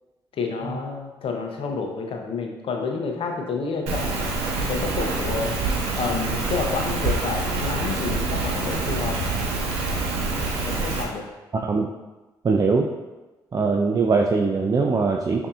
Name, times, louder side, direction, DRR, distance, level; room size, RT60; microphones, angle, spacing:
voice 1, 0.3-4.3 4.7-5.5 5.9-9.2 10.7-11.3, left 4 dB, 60° left, 3 dB, 0.7 m, -29 dB
Rain, 3.9-11.0, right 3 dB, 80° right, 0.6 m, -26 dB
voice 2, 12.4-12.9 13.5-15.5, right 4 dB, 35° right, 1 dB, 0.4 m, -21 dB
5.3 x 2.7 x 2.4 m, 1.1 s
hypercardioid pair, 45°, 11 cm